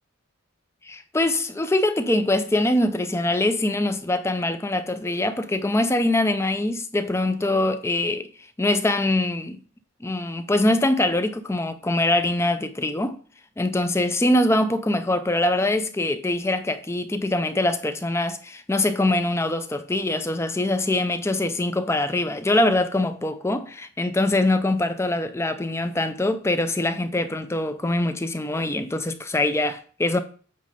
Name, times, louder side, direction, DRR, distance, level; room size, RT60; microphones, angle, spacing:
voice 1, 0.9-8.3 8.6-9.6 10.0-13.2 13.6-30.2, left 1 dB, 15° left, 0.4 m, -23 dB
8.6 x 3.3 x 5.1 m
head